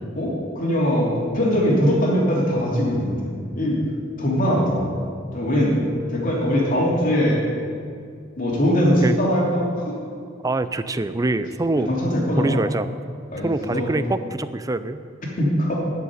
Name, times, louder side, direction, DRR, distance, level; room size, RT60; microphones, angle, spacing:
voice 1, 0.1-3.8 4.2-4.9 5.3-5.8 6.1-7.4 8.4-9.9 11.9-12.6 13.3-14.0 15.4-15.8, equal, 45° left, -4 dB, 3.1 m, -21 dB
voice 2, 10.4-11.9 12.4-12.9 13.4-15.0, right 2 dB, 20° right, 12 dB, 0.4 m, -24 dB
12.5 x 6.9 x 9.4 m, 2.3 s
head